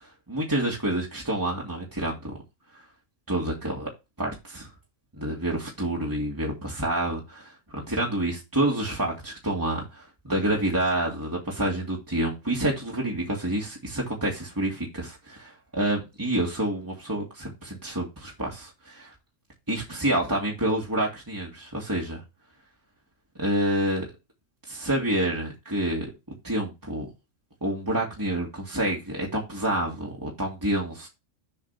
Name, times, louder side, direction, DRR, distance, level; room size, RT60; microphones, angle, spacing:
voice 1, 0.0-2.3 2.7-2.8 3.3-3.9 4.2-4.7 5.2-19.1 19.7-22.2 23.4-24.1 24.7-26.1 26.4-27.1 27.6-31.1, right 1 dB, 15° right, 2.2 m, -28 dB
7.3 x 4.6 x 5.8 m
omnidirectional pair, 1.3 m